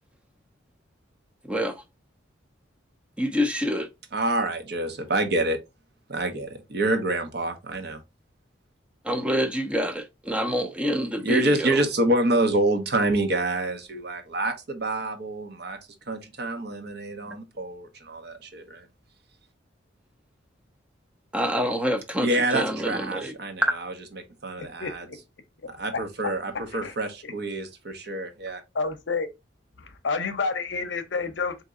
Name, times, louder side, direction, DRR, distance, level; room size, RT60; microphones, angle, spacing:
voice 1, 3.2-3.9 9.0-11.8 21.3-23.3, equal, 5° right, 0.5 m, -27 dB
voice 2, 4.1-5.6 6.1-8.0 11.0-15.8 16.1-18.9 22.2-25.1 25.7-28.6, right 2 dB, 55° right, 0.9 m, -27 dB
voice 3, 24.6-25.0 25.9-26.3 26.7-26.9 27.2-27.3 28.7-29.3 29.8-31.6, left 4 dB, 65° left, 0.7 m, -30 dB
3.8 x 2.8 x 3.6 m
head